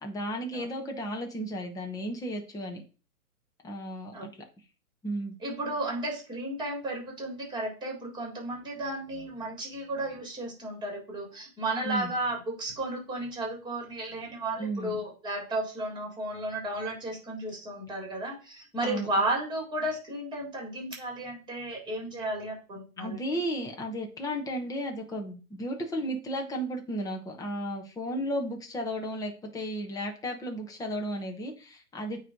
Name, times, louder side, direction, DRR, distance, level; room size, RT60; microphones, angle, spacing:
voice 1, 0.0-2.8 3.6-4.3 5.0-5.4 11.8-12.1 14.6-15.0 18.8-19.1 23.0-32.2, equal, 10° left, 2 dB, 1.2 m, -34 dB
voice 2, 5.4-23.2, right 1 dB, 10° right, 0 dB, 4.1 m, -33 dB
8.8 x 3.3 x 5.2 m, 0.35 s
hypercardioid pair, 140°, 44 cm